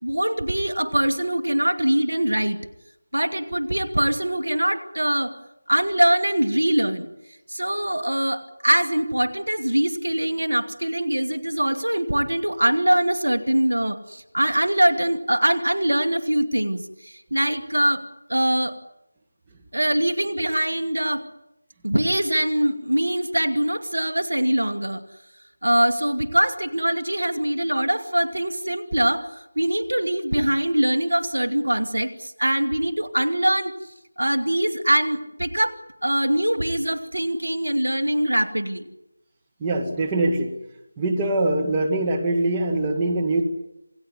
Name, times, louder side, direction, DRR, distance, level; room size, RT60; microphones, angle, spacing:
voice 1, 0.0-2.6 3.1-5.4 5.7-7.1 7.5-18.0 18.3-18.8 19.7-21.3 21.8-25.0 25.6-29.3 29.6-33.7 34.2-38.9, right 1 dB, 75° right, 11 dB, 2.6 m, -23 dB
voice 2, 39.6-40.6 41.0-43.4, right 2 dB, 15° right, -1 dB, 2.1 m, -23 dB
27.5 x 18.0 x 9.8 m, 0.88 s
figure-of-eight pair, 165°, 0 cm